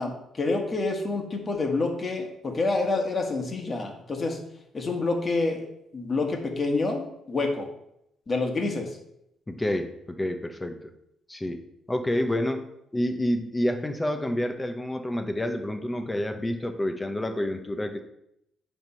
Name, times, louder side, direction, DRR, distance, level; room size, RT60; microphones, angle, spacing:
voice 1, 0.0-4.4 4.7-5.6 5.9-7.7 8.3-8.9, left 3 dB, 35° left, 3 dB, 1.6 m, -27 dB
voice 2, 9.5-10.7 11.3-11.6 11.9-12.6 12.9-18.0, left 1 dB, 15° left, 6 dB, 0.9 m, -28 dB
9.3 x 3.6 x 5.7 m, 0.78 s
cardioid pair, 90°, 0 cm